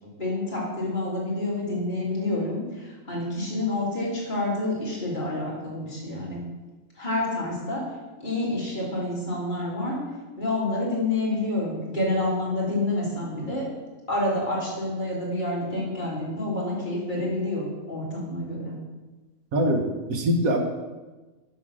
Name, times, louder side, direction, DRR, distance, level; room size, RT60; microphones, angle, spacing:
voice 1, 0.0-6.4 7.0-7.8 8.2-10.0 10.4-13.7 14.1-18.8, left 2 dB, 30° left, -5 dB, 2.9 m, -28 dB
voice 2, 19.5-20.6, equal, 70° right, 4 dB, 1.5 m, -23 dB
7.8 x 5.7 x 6.3 m, 1.2 s
omnidirectional pair, 1.6 m